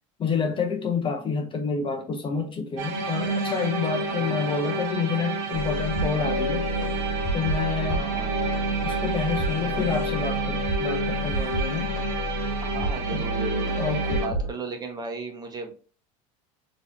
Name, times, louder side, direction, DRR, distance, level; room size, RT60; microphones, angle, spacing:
voice 1, 0.2-6.7 7.3-8.1 8.8-12.0 13.1-13.3 13.8-14.4, left 5 dB, 30° left, 0.7 m, -28 dB
sound 1, 2.8-14.3, right 2 dB, 65° right, 1.0 m, -29 dB
voice 2, 4.1-4.7 7.8-8.6 12.6-15.9, right 4 dB, 25° right, 1.0 m, -37 dB
sound 2, 5.5-14.5, right 1 dB, 70° left, 1.3 m, -30 dB
3.9 x 2.9 x 2.7 m
supercardioid pair, 100°, 17 cm